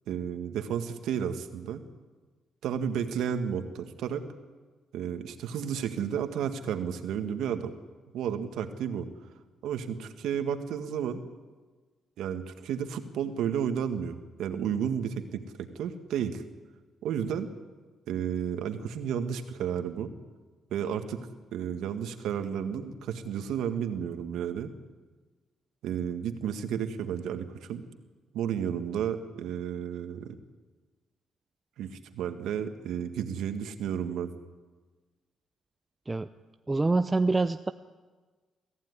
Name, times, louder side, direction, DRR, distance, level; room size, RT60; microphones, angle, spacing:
voice 1, 0.1-1.8 2.6-4.2 4.9-7.7 8.1-9.1 9.6-11.2 12.2-16.4 17.0-17.5 18.1-20.1 20.7-21.2 21.5-24.7 25.8-27.8 28.3-30.4 31.8-34.3, right 8 dB, 85° right, 8 dB, 1.8 m, -32 dB
voice 2, 36.7-37.7, right 3 dB, 20° right, 10 dB, 0.6 m, -25 dB
23.5 x 15.0 x 9.8 m, 1.3 s
cardioid pair, 105°, 0 cm